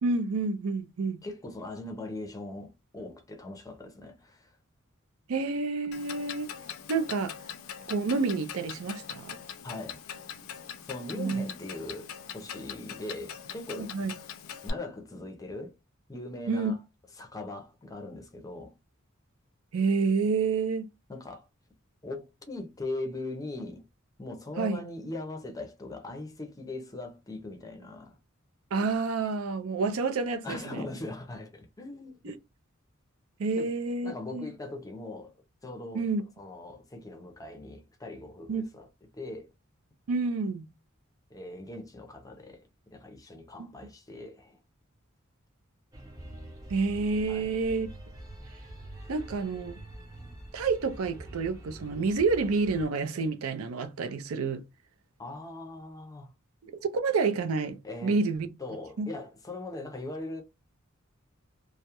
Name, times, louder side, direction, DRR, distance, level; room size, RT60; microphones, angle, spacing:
voice 1, 0.0-1.2 5.3-6.5 6.9-7.3 7.9-9.4 11.2-11.5 13.8-14.1 16.5-16.7 19.7-20.9 24.6-24.8 28.7-30.8 32.2-32.4 33.4-34.5 35.9-36.2 38.5-38.6 40.1-40.7 43.6-43.7 46.7-47.9 49.1-49.8 50.5-54.6 56.6-58.5 59.0-59.1, right 4 dB, 90° right, 0.5 m, -29 dB
voice 2, 1.2-4.5 9.6-10.0 10.9-14.1 14.6-15.7 16.1-16.8 17.2-18.7 21.1-21.5 22.0-23.8 24.2-28.2 30.4-32.4 33.5-33.7 34.0-35.3 35.6-36.1 36.4-38.9 39.1-39.5 41.3-42.6 42.9-44.6 47.3-47.5 55.2-56.3 57.8-58.2 58.6-60.4, left 2 dB, 15° left, 0.5 m, -40 dB
Clock, 5.9-14.7, left 8 dB, 80° left, 0.4 m, -42 dB
sound 1, 45.9-52.9, right 1 dB, 15° right, 0.7 m, -45 dB
2.2 x 2.0 x 2.8 m
head